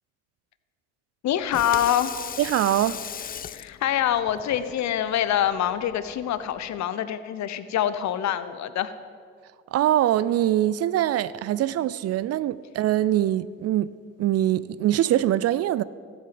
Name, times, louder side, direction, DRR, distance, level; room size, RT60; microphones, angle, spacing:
voice 1, 1.2-2.1 3.5-8.9, left 10 dB, 60° left, 0.8 m, -25 dB
Water tap faucet / Sink (filling or washing), 1.3-6.8, left 9 dB, 30° left, 0.4 m, -39 dB
voice 2, 2.4-3.0 9.7-13.9 14.2-15.8, right 12 dB, 50° right, 0.4 m, -23 dB
13.0 x 8.2 x 7.7 m
hypercardioid pair, 50°, 32 cm